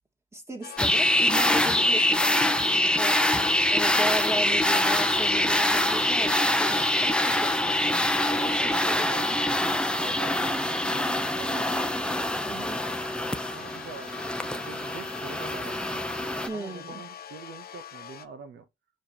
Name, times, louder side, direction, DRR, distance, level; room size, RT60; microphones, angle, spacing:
voice 1, 0.3-3.2 3.7-9.4 12.4-12.8 16.5-17.1, right 2 dB, 15° right, 1.9 m, -37 dB
sound 1, 0.6-18.3, left 9 dB, 50° left, 0.8 m, -43 dB
sound 2, 0.8-16.5, left 1 dB, 5° left, 0.7 m, -25 dB
voice 2, 8.6-9.6 10.0-12.4 13.5-18.7, right 5 dB, 70° right, 1.5 m, -45 dB
5.3 x 4.8 x 4.5 m
cardioid pair, 90°, 20 cm